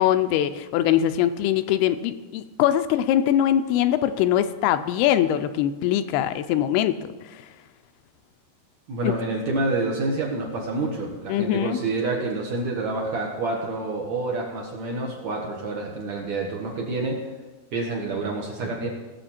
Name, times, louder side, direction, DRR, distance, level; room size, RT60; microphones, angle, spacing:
voice 1, 0.0-7.4 9.0-9.1 11.3-11.8, left 11 dB, 85° left, 10 dB, 2.5 m, -22 dB
voice 2, 8.9-17.2 17.7-18.9, right 2 dB, 60° right, -1 dB, 2.1 m, -28 dB
18.5 x 7.2 x 4.4 m, 1.2 s
omnidirectional pair, 4.6 m